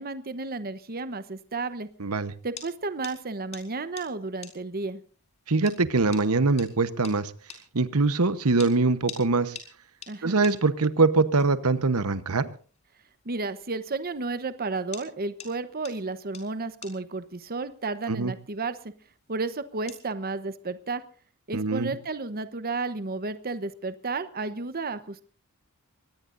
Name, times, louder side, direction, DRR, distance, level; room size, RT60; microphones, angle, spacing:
voice 1, 0.0-1.9 2.4-5.0 10.1-10.4 13.2-18.8 19.3-21.0 21.5-25.2, right 3 dB, 45° right, 12 dB, 1.0 m, -32 dB
sound 1, 1.4-20.1, left 6 dB, 30° left, 4.5 m, -50 dB
voice 2, 2.0-2.3 5.5-7.3 7.7-9.6 10.2-12.5 18.1-18.3 21.5-21.9, right 3 dB, 75° right, 13 dB, 1.1 m, -23 dB
24.0 x 19.0 x 2.6 m, 0.41 s
head